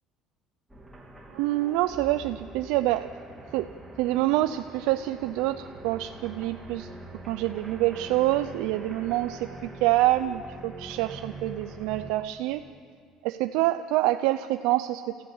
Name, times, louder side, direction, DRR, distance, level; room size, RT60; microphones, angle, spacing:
sound 1, 0.7-12.1, right 2 dB, 5° right, 2.0 m, -44 dB
voice 1, 1.3-3.1 3.5-3.7 4.0-6.9 7.3-9.5 9.8-12.6 13.2-15.0, right 16 dB, 85° right, 9 dB, 0.5 m, -26 dB
28.0 x 15.0 x 7.3 m, 2.2 s
cardioid pair, 180°, 0 cm